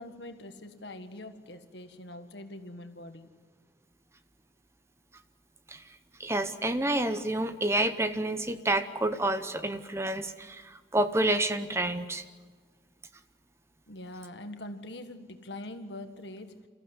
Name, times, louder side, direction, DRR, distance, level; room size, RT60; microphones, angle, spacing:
voice 1, 0.0-3.3 13.9-16.5, left 1 dB, 75° left, 7 dB, 1.6 m, -43 dB
voice 2, 6.2-12.2, right 1 dB, 15° right, 10 dB, 0.8 m, -29 dB
28.0 x 14.5 x 8.1 m, 1.5 s
head